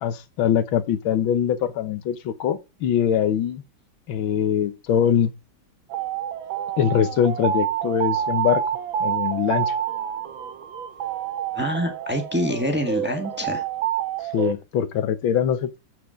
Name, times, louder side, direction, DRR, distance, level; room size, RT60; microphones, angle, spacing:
voice 1, 0.0-3.6 4.1-5.3 6.8-8.6 9.0-9.7 14.3-15.8, left 9 dB, 85° left, 1.8 m, -22 dB
sound 1, 5.9-14.5, right 10 dB, 85° right, 1.8 m, -28 dB
voice 2, 11.5-13.6, left 1 dB, 5° right, 1.2 m, -26 dB
8.1 x 7.0 x 5.0 m
omnidirectional pair, 2.1 m